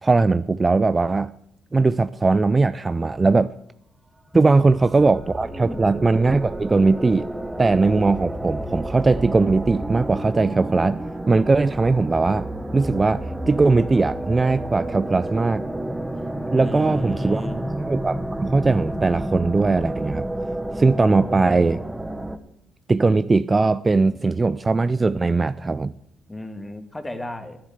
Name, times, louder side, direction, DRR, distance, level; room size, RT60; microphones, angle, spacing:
voice 1, 0.0-1.3 1.7-3.5 4.3-7.3 7.6-12.5 12.7-15.6 16.5-20.3 20.8-21.8 22.9-25.9, right 3 dB, 25° right, 14 dB, 0.4 m, -20 dB
sound 1, 4.3-22.4, right 1 dB, 5° right, 1.3 m, -30 dB
voice 2, 5.4-5.8 16.6-17.6 26.3-27.6, left 1 dB, 15° left, 8 dB, 2.0 m, -35 dB
11.5 x 10.5 x 8.1 m, 0.75 s
cardioid pair, 90°, 0 cm